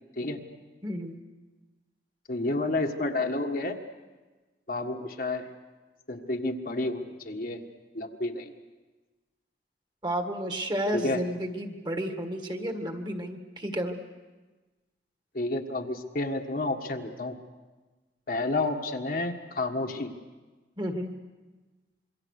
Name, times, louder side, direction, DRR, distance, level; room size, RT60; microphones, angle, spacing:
voice 1, 0.8-1.2 10.0-14.0 20.8-21.1, equal, 25° right, 5 dB, 1.8 m, -32 dB
voice 2, 2.3-3.8 4.7-5.5 6.1-7.6 7.9-8.5 10.9-11.2 15.3-17.3 18.3-20.1, left 2 dB, 50° left, 3 dB, 1.6 m, -30 dB
27.0 x 23.5 x 6.6 m, 1.3 s
head